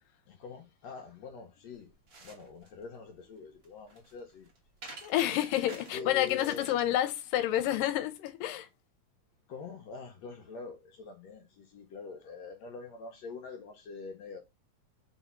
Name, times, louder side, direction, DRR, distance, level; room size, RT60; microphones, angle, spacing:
voice 1, 0.3-1.9 2.2-4.5 5.9-6.7 9.5-14.4, left 4 dB, 65° left, 1.9 m, -44 dB
sound 1, 1.7-6.9, right 3 dB, 55° right, 1.0 m, -52 dB
voice 2, 5.0-8.7, left 13 dB, 80° left, 2.4 m, -29 dB
5.2 x 3.6 x 5.6 m
omnidirectional pair, 4.0 m